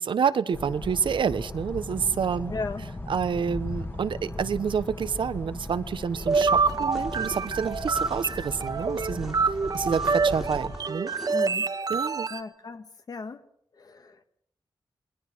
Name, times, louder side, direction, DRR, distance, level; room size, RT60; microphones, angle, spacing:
voice 1, 0.0-2.5 3.1-9.3 9.7-11.1 11.9-12.3, right 6 dB, 75° right, 13 dB, 1.0 m, -28 dB
sound 1, 0.5-10.8, left 2 dB, 25° left, 2.3 m, -37 dB
voice 2, 2.5-2.8 11.3-11.7 12.3-13.4 13.8-14.3, left 4 dB, 50° left, 8 dB, 1.9 m, -36 dB
sound 2, 6.2-12.4, right 4 dB, 50° right, 1.3 m, -27 dB
sound 3, 6.3-11.6, equal, ahead, 2.5 m, -44 dB
28.0 x 21.0 x 6.2 m, 0.67 s
wide cardioid pair, 160°, 8 cm